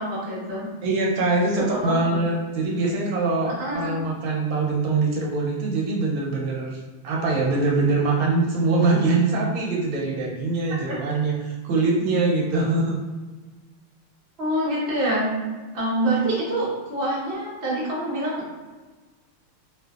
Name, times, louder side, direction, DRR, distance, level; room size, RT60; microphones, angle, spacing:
voice 1, 0.0-0.7 1.7-2.2 3.5-3.9 10.9-11.0 14.4-15.3 15.7-18.4, right 1 dB, 50° right, -7 dB, 0.7 m, -26 dB
voice 2, 0.8-6.8 7.0-13.0, right 3 dB, 75° right, -2 dB, 1.4 m, -23 dB
3.3 x 2.4 x 2.2 m, 1.3 s
omnidirectional pair, 2.4 m